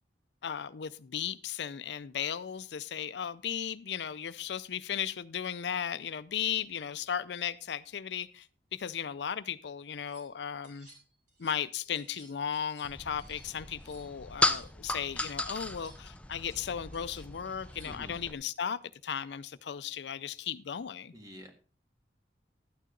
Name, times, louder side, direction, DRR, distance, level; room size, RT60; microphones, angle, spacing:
voice 1, 0.4-10.9 11.4-21.1, left 8 dB, 70° left, 0.5 m, -36 dB
sound 1, 9.8-10.3 10.6-11.7 11.9-14.7 15.0-18.1, right 1 dB, 50° right, 6.0 m, -59 dB
sound 2, 12.8-18.3, left 2 dB, 5° left, 0.6 m, -35 dB
voice 2, 17.8-18.2 21.1-21.5, equal, 20° right, 1.8 m, -47 dB
12.0 x 9.3 x 3.8 m
head